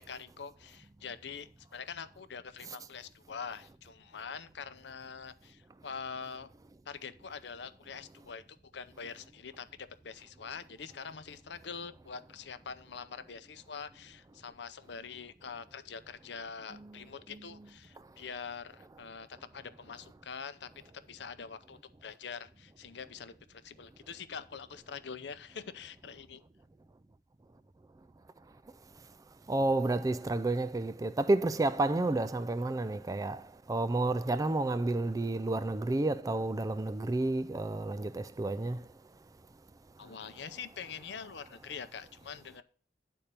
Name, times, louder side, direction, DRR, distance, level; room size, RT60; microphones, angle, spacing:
voice 1, 0.0-6.5 6.9-9.7 10.0-26.4 40.0-42.6, left 6 dB, 65° left, 0.6 m, -44 dB
voice 2, 29.5-33.4 33.7-38.8, right 2 dB, 20° right, 0.3 m, -30 dB
10.0 x 4.3 x 6.7 m
head